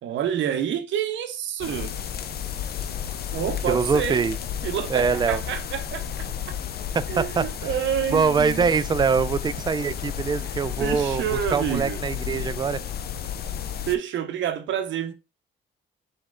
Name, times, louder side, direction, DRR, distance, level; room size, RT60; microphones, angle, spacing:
voice 1, 0.0-1.9 3.3-4.3 4.6-6.3 7.1-8.6 10.8-12.0 13.9-15.1, right 9 dB, 75° right, 0.7 m, -28 dB
sound 1, 1.6-14.0, left 9 dB, 50° left, 0.5 m, -32 dB
voice 2, 3.7-4.3 4.9-5.4 6.9-7.4 8.1-11.2 11.5-12.8, right 5 dB, 20° right, 0.3 m, -23 dB
4.2 x 3.1 x 3.7 m
cardioid pair, 90°, 20 cm